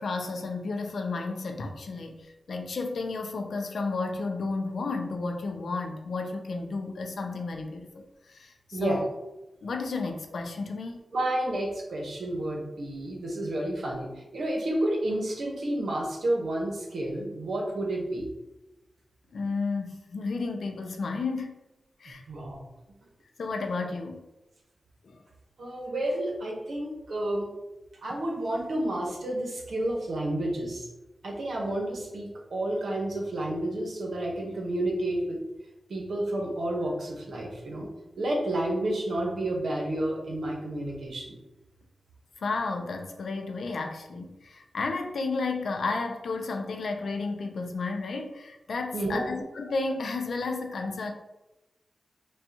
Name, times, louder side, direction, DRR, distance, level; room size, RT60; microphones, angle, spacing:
voice 1, 0.0-9.1 9.6-11.0 19.3-21.5 22.0-22.2 23.4-24.3 25.0-25.2 42.4-51.1, left 3 dB, 85° left, 4 dB, 0.5 m, -32 dB
voice 2, 11.1-14.1 14.3-18.3 22.1-22.6 25.6-27.5 28.0-30.9 31.2-35.4 35.9-37.9 38.2-41.3 48.9-49.3, right 1 dB, 85° right, -2 dB, 1.0 m, -30 dB
5.3 x 2.3 x 2.8 m, 1.0 s
cardioid pair, 70°, 0 cm